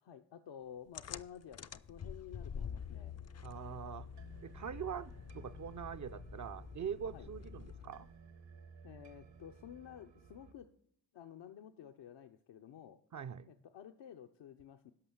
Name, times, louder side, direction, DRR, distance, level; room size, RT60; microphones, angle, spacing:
voice 1, 0.0-3.2 7.1-7.3 8.8-10.7 11.1-13.0 13.5-14.9, left 9 dB, 70° left, 0.7 m, -52 dB
sound 1, 0.9-8.1, left 7 dB, 35° left, 0.5 m, -47 dB
sound 2, 1.7-10.5, right 6 dB, 75° right, 1.3 m, -59 dB
voice 2, 3.4-4.1 4.4-8.1 13.1-13.5, right 8 dB, 45° right, 0.5 m, -43 dB
12.5 x 5.5 x 7.1 m
cardioid pair, 65°, 43 cm